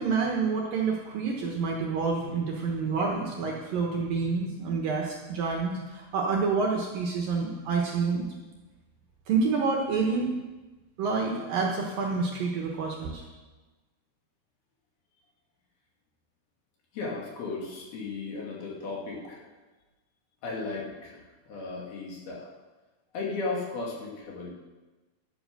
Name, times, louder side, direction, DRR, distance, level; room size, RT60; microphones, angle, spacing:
voice 1, 0.0-8.3 9.3-10.3 11.0-13.2, right 4 dB, 65° right, 0 dB, 2.4 m, -28 dB
voice 2, 16.9-19.4 20.4-22.5 23.1-24.5, left 3 dB, 60° left, -3 dB, 3.9 m, -35 dB
12.0 x 8.8 x 6.7 m, 1.2 s
omnidirectional pair, 5.2 m